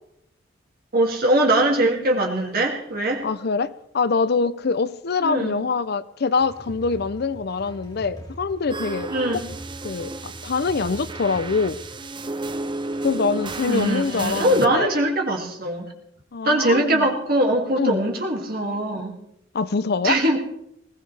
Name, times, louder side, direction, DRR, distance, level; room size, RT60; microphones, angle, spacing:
voice 1, 0.9-3.2 5.2-5.6 9.1-9.5 13.7-15.9 16.4-19.1 20.0-20.4, right 1 dB, 50° right, 1 dB, 2.4 m, -21 dB
voice 2, 3.2-9.1 9.8-11.8 13.0-15.0 16.3-17.1 17.8-18.0 19.5-20.2, left 4 dB, 55° left, 16 dB, 0.5 m, -24 dB
sound 1, 6.4-12.0, equal, 20° left, 3.1 m, -42 dB
sound 2, 8.7-14.7, right 2 dB, 25° right, 0.6 m, -33 dB
20.5 x 17.5 x 3.4 m, 0.77 s
head